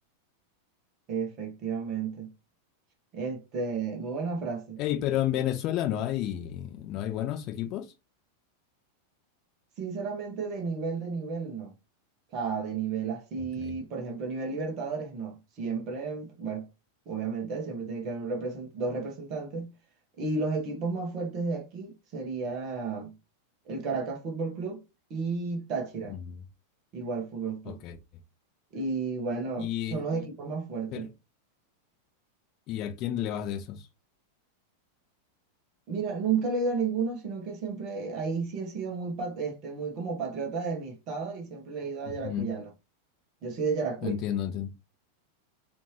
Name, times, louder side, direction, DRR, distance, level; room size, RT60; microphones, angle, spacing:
voice 1, 1.1-2.3 3.1-4.8 9.8-11.7 12.3-16.7 17.0-19.7 20.2-23.1 23.6-24.8 25.1-26.2 26.9-27.8 28.7-31.1 35.9-42.7 43.4-44.2, right 4 dB, 40° right, 1.4 m, -32 dB
voice 2, 4.8-7.9 13.6-13.7 26.1-26.4 27.6-28.0 29.6-30.0 30.9-31.1 32.7-33.9 42.0-42.5 44.0-44.7, left 11 dB, 40° left, 0.8 m, -31 dB
4.4 x 2.8 x 3.2 m
figure-of-eight pair, 90°, 0 cm